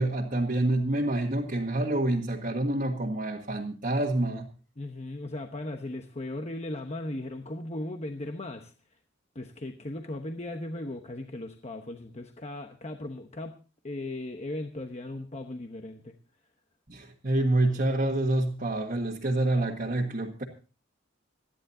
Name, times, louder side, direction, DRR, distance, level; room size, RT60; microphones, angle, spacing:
voice 1, 0.0-4.5 16.9-20.4, right 1 dB, 40° right, -2 dB, 1.7 m, -27 dB
voice 2, 4.8-8.7 9.3-13.6 13.8-16.1, left 1 dB, 35° left, 5 dB, 1.0 m, -37 dB
26.5 x 10.5 x 2.8 m, 0.35 s
head